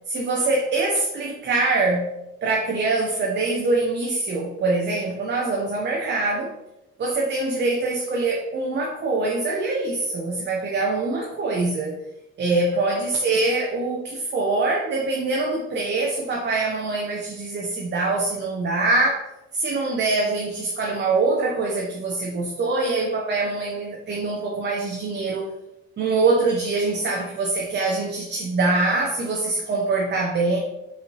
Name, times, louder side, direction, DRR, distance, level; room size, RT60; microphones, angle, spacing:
voice 1, 0.1-2.1 2.4-6.5 7.0-12.0 12.4-25.5 26.0-30.6, right 3 dB, 30° right, -1 dB, 0.7 m, -24 dB
5.2 x 3.1 x 2.7 m, 0.92 s
figure-of-eight pair, 50°, 34 cm